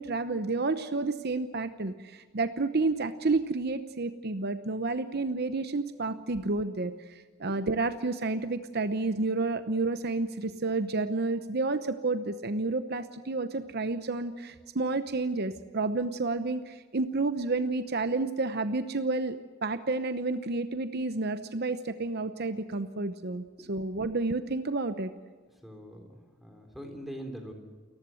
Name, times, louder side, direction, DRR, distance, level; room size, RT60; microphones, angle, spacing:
voice 1, 0.0-25.1, right 3 dB, 50° right, 10 dB, 0.8 m, -30 dB
voice 2, 25.6-27.5, equal, ahead, 3 dB, 3.7 m, -43 dB
29.0 x 15.0 x 7.8 m, 1.5 s
head